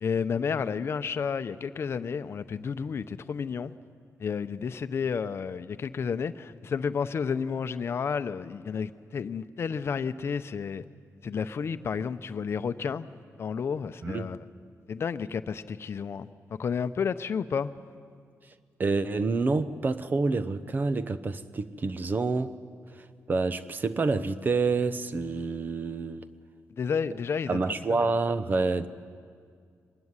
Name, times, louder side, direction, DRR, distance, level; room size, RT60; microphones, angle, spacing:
voice 1, 0.0-3.8 4.2-10.8 11.2-14.4 14.9-17.7 26.8-27.6, left 6 dB, 50° left, 0.8 m, -31 dB
voice 2, 14.0-14.3 18.8-22.6 23.3-26.3 27.5-28.9, right 3 dB, 35° right, 0.9 m, -28 dB
24.0 x 20.0 x 9.8 m
wide cardioid pair, 160°, 6 cm